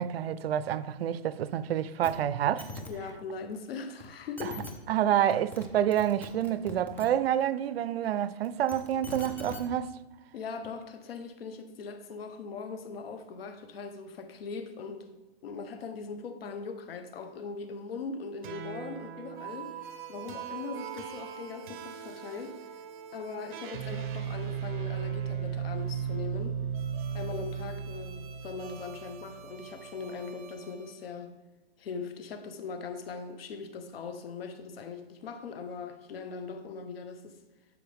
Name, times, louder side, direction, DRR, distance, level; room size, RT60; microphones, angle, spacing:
voice 1, 0.0-2.7 4.4-4.5 4.9-9.9, right 10 dB, 80° right, 0.6 m, -28 dB
sound 1, 2.0-2.1 2.4-2.9 4.0-4.1 4.4-4.7 5.3-5.7 5.9-7.1 8.4-9.6 10.6-10.7, left 3 dB, 5° left, 0.4 m, -41 dB
voice 2, 2.9-4.6 10.3-15.1 15.4-19.8 20.1-22.6 23.1-26.6 27.1-31.3 31.8-37.4, left 5 dB, 75° left, 1.1 m, -40 dB
sound 2, 18.4-30.9, right 7 dB, 55° right, 1.1 m, -37 dB
12.0 x 4.6 x 3.5 m
hypercardioid pair, 160°, 30 cm